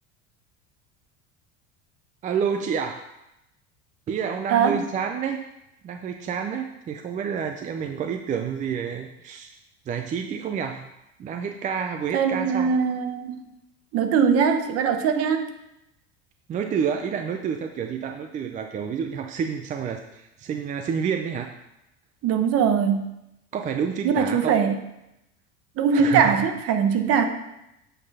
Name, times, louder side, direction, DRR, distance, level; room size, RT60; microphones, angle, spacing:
voice 1, 2.2-3.0 4.1-5.5 5.8-9.5 9.9-10.9 11.2-12.7 16.5-21.5 23.5-24.6 25.9-26.3, right 7 dB, 25° right, 5 dB, 0.4 m, -29 dB
voice 2, 4.5-4.9 12.1-13.5 13.9-15.5 22.2-23.1 24.0-24.8 25.8-27.3, right 6 dB, 50° right, 7 dB, 0.9 m, -21 dB
7.7 x 4.4 x 4.8 m, 0.87 s
supercardioid pair, 130°, 31 cm